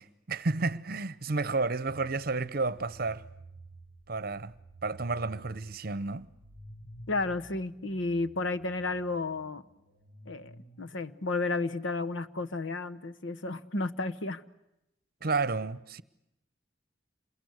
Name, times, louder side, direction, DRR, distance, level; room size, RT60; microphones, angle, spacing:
voice 1, 0.0-3.2 4.1-4.5 4.8-6.3 15.2-16.0, right 3 dB, 50° right, 0.9 m, -31 dB
sound 1, 1.9-12.2, right 2 dB, 50° left, 5.2 m, -53 dB
voice 2, 7.1-9.6 10.3-10.5 10.8-14.4, left 3 dB, 80° left, 1.1 m, -32 dB
28.0 x 22.0 x 8.2 m
head